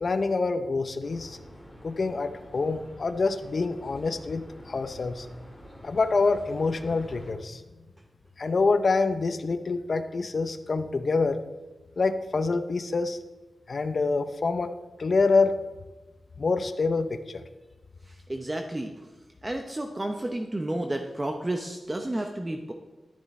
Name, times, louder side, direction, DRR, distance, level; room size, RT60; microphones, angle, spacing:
voice 1, 0.0-1.4 1.8-5.3 5.8-7.6 8.4-11.4 12.0-13.2 13.7-14.7 15.0-15.7 16.4-17.4, left 3 dB, 50° left, 8 dB, 0.6 m, -26 dB
sound 1, 1.0-7.3, equal, ahead, 3.9 m, -48 dB
voice 2, 18.0-19.1 19.4-22.7, right 1 dB, 20° right, 4 dB, 0.7 m, -31 dB
11.5 x 10.5 x 4.2 m, 1.1 s
wide cardioid pair, 135°, 0 cm